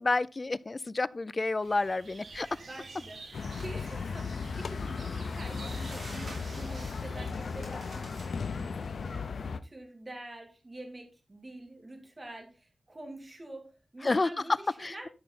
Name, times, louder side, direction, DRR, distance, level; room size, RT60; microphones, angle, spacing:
voice 1, 0.0-2.5 14.0-14.3 14.8-15.1, left 3 dB, 35° left, 0.5 m, -30 dB
sound 1, 1.6-7.3, right 3 dB, 80° right, 2.1 m, -50 dB
voice 2, 2.5-8.8 9.0-15.1, right 2 dB, 30° right, 2.9 m, -46 dB
sound 2, 3.2-3.7 4.2-4.3 5.2-8.9, right 2 dB, 60° right, 5.2 m, -50 dB
sound 3, 3.3-9.6, left 5 dB, 85° left, 0.7 m, -36 dB
13.0 x 5.7 x 4.1 m
wide cardioid pair, 110°, 0 cm